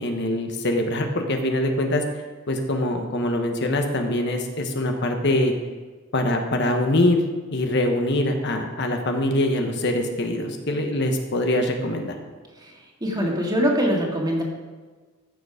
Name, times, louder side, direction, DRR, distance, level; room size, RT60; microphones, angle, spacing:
voice 1, 0.0-2.0 2.5-5.5 6.1-7.2 7.5-12.2, left 1 dB, 60° left, 4 dB, 1.3 m, -23 dB
voice 2, 13.0-14.4, equal, 20° right, -1 dB, 2.0 m, -23 dB
14.5 x 6.9 x 5.0 m, 1.4 s
head